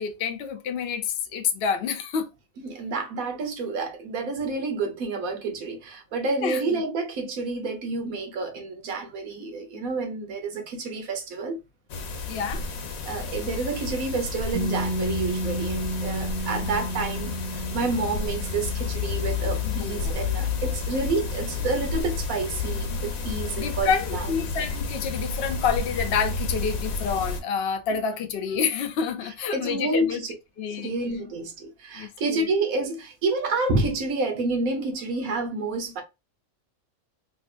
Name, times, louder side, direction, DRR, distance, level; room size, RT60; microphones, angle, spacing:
voice 1, 0.0-2.3 6.4-6.8 12.3-12.6 19.6-20.2 23.6-30.2 30.6-30.9 31.9-32.4, left 6 dB, 60° left, 0.7 m, -28 dB
voice 2, 2.6-11.6 13.1-24.3 29.5-30.3 30.8-36.0, right 3 dB, 85° right, 1.4 m, -29 dB
sound 1, 11.9-27.4, left 4 dB, 85° left, 1.2 m, -31 dB
Piano, 14.5-21.8, right 1 dB, 65° right, 0.5 m, -34 dB
3.4 x 2.8 x 2.4 m
omnidirectional pair, 1.4 m